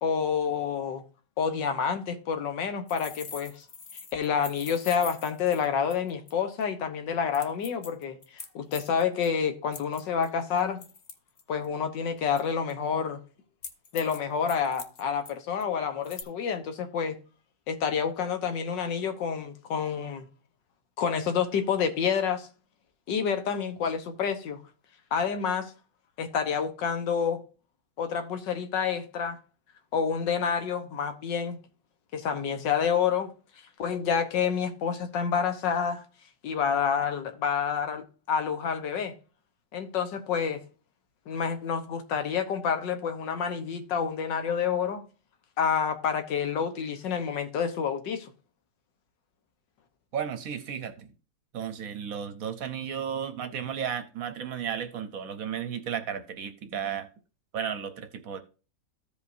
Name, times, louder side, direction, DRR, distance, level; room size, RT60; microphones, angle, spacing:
voice 1, 0.0-1.0 1.4-3.6 4.1-10.8 11.5-13.2 13.9-17.2 17.7-20.3 21.0-22.5 23.1-24.6 25.1-25.7 26.2-27.4 28.0-29.4 29.9-31.6 32.1-33.3 33.8-36.0 36.4-39.1 39.7-40.6 41.3-45.1 45.6-48.3, left 7 dB, 90° left, 1.7 m, -28 dB
sound 1, 2.9-6.3 6.6-6.7 7.3-9.3 9.7-11.7 12.4-12.7 13.6-14.2 14.5-15.3 15.6-15.7 16.0-16.2, left 5 dB, 45° left, 0.6 m, -43 dB
voice 2, 50.1-51.1 51.5-57.1 57.5-58.4, right 8 dB, 60° right, 1.0 m, -34 dB
14.5 x 5.1 x 2.6 m
omnidirectional pair, 1.9 m